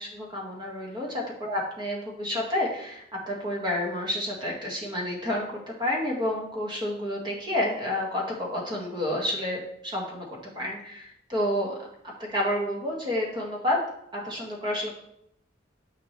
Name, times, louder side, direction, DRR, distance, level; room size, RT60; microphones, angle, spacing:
voice 1, 0.0-10.3 10.6-11.7 12.2-13.8 14.1-15.0, left 1 dB, 25° right, -2 dB, 1.8 m, -30 dB
9.6 x 5.2 x 3.3 m, 0.73 s
head